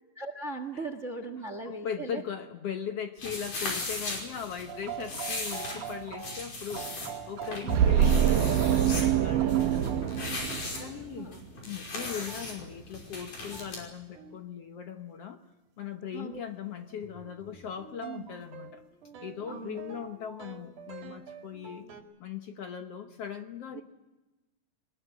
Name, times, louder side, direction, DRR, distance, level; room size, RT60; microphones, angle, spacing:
voice 1, 0.2-2.2 7.6-7.9 10.7-11.4 16.1-16.4 18.0-18.3 19.5-19.8 23.7-23.8, right 3 dB, 35° right, 8 dB, 1.2 m, -39 dB
voice 2, 1.8-7.0 7.3-10.5 10.8-11.4 11.6-15.4 15.8-18.8 19.2-21.9 22.2-23.8, left 8 dB, 60° left, 6 dB, 1.8 m, -39 dB
sound 1, 3.2-13.8, left 2 dB, 80° left, 7.0 m, -38 dB
sound 2, 4.7-9.0 9.4-10.6 12.3-12.5 13.5-13.7 14.1-14.4 16.7-22.0, right 7 dB, 70° right, 3.7 m, -43 dB
sound 3, 7.7-11.1, right 9 dB, 85° right, 2.6 m, -25 dB
21.5 x 20.5 x 9.2 m, 1.1 s
omnidirectional pair, 3.7 m